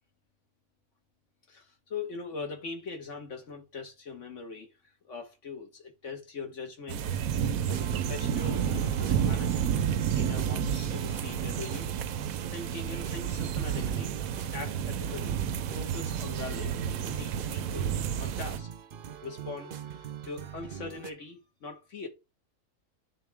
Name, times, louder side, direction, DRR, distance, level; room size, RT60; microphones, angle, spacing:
voice 1, 1.5-7.0 7.3-9.7 10.1-11.9 12.5-14.2 14.5-15.4 15.8-17.9 18.2-18.7 19.2-22.1, left 4 dB, 60° left, 1.9 m, -41 dB
sound 1, 6.9-18.6, right 8 dB, 85° right, 1.1 m, -30 dB
sound 2, 7.7-21.1, right 8 dB, 50° right, 0.7 m, -42 dB
10.0 x 3.9 x 3.5 m
omnidirectional pair, 1.4 m